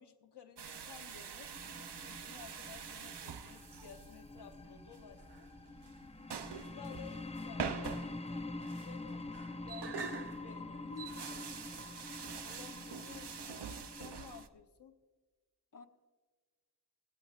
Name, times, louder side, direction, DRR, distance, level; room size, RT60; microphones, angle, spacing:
voice 1, 0.0-1.6 2.1-5.5 6.5-11.0 11.3-11.5 12.3-15.0, left 7 dB, 85° left, 4 dB, 0.9 m, -55 dB
sound 1, 0.6-14.5, right 6 dB, 90° right, 0.7 m, -46 dB
sound 2, 1.5-14.4, left 2 dB, 15° left, 0.6 m, -46 dB
voice 2, 10.9-11.4 15.7-15.9, left 4 dB, 50° left, 5 dB, 1.0 m, -49 dB
18.0 x 13.5 x 2.4 m, 1.4 s
wide cardioid pair, 55°, 40 cm